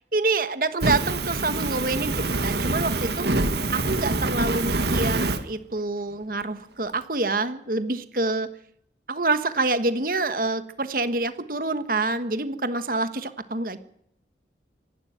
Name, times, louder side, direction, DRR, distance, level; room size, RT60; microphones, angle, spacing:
voice 1, 0.1-3.3 3.7-8.5 9.1-13.8, right 3 dB, 50° right, 11 dB, 1.4 m, -27 dB
Fire, 0.8-5.4, right 2 dB, 70° right, 1.7 m, -25 dB
25.0 x 12.0 x 9.2 m, 0.73 s
head